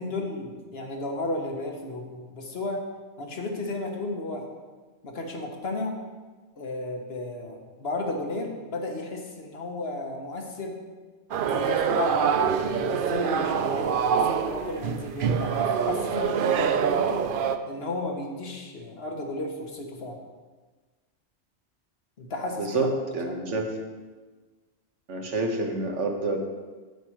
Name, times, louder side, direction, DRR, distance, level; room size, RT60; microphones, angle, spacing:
voice 1, 0.0-2.8 3.2-4.5 5.0-6.0 6.6-10.8 11.5-17.3 17.7-20.2 22.2-22.9 23.3-23.4, left 2 dB, 60° left, 2 dB, 1.3 m, -33 dB
sound 1, 11.3-17.6, right 7 dB, 60° right, 0.6 m, -25 dB
voice 2, 22.6-23.8 25.1-26.4, right 2 dB, 75° right, 2 dB, 1.5 m, -28 dB
7.9 x 7.8 x 4.6 m, 1.3 s
omnidirectional pair, 1.2 m